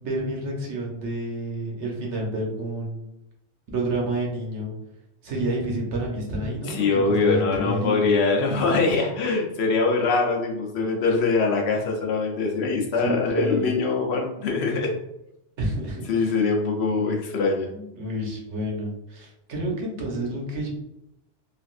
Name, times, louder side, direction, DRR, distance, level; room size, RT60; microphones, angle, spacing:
voice 1, 0.0-3.1 3.7-4.7 5.2-8.1 13.0-13.7 15.6-16.3 16.9-17.2 17.7-20.7, right 1 dB, 80° right, -1 dB, 1.1 m, -29 dB
voice 2, 6.7-14.9 16.1-17.7, left 4 dB, 70° left, 0 dB, 0.9 m, -23 dB
3.3 x 2.5 x 2.4 m, 0.86 s
omnidirectional pair, 1.2 m